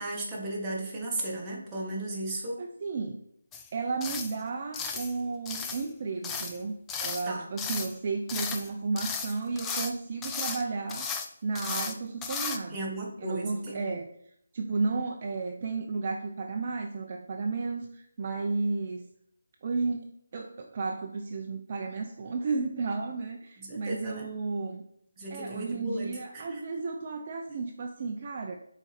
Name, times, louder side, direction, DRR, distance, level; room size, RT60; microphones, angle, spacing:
voice 1, 0.0-2.6 7.2-7.5 12.7-14.0 23.6-24.3 25.2-26.6, right 1 dB, 15° right, -6 dB, 1.5 m, -35 dB
voice 2, 2.6-3.2 3.7-6.7 7.0-11.1 11.4-12.9 13.2-14.1 14.5-19.1 19.6-24.8 25.3-28.6, right 4 dB, 40° right, 3 dB, 0.5 m, -33 dB
sound 1, 3.5-3.7 4.0-4.3 4.7-5.1 5.5-5.9 6.2-6.6 6.9-7.3 7.6-7.9 8.3-8.7 9.0-9.9 10.2-10.6 10.9-11.3 11.5-11.9 12.2-12.6, left 5 dB, 10° left, 0.4 m, -34 dB
6.8 x 4.1 x 4.3 m, 0.73 s
figure-of-eight pair, 165°, 0 cm